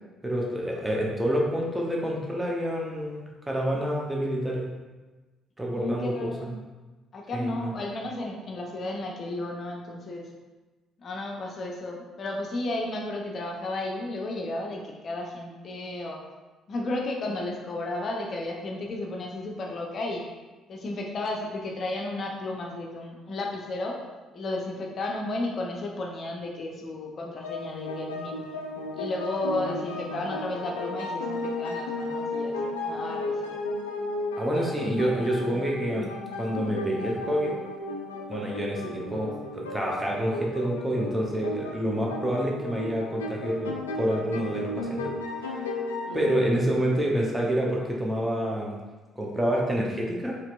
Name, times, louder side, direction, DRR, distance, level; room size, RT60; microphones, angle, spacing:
voice 1, 0.2-4.7 5.6-6.6 7.3-7.7 34.4-36.1 36.4-37.5 38.3-45.1 45.4-45.6 46.1-48.8 49.2-50.4, equal, 10° right, -2 dB, 0.9 m, -28 dB
voice 2, 5.7-6.5 7.1-10.3 11.0-16.2 16.7-20.2 20.7-24.0 24.3-28.4 28.9-33.5 46.1-46.2, left 2 dB, 40° left, 0 dB, 0.7 m, -33 dB
sound 1, 27.4-46.3, left 2 dB, 75° left, 0.3 m, -34 dB
4.4 x 3.0 x 2.5 m, 1.2 s
figure-of-eight pair, 45°, 0 cm